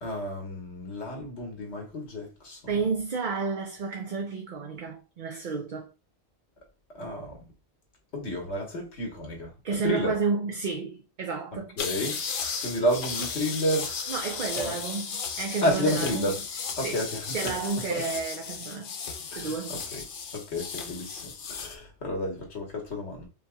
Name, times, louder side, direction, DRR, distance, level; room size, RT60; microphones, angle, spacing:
voice 1, 0.0-2.7 6.9-7.4 8.1-9.5 9.8-10.1 11.8-12.3 12.6-13.9 14.5-14.8 15.6-16.4 16.8-17.5 17.9-18.0 19.3-20.0 20.3-23.3, equal, 85° left, 1.6 m, -31 dB
voice 2, 2.7-5.9 9.6-11.8 14.1-15.1 15.4-16.3 16.8-17.0 17.3-18.9 19.2-19.8, right 5 dB, 50° right, 0.7 m, -31 dB
sound 1, 11.8-21.8, left 6 dB, 60° left, 0.7 m, -35 dB
5.3 x 2.8 x 2.3 m
omnidirectional pair, 1.1 m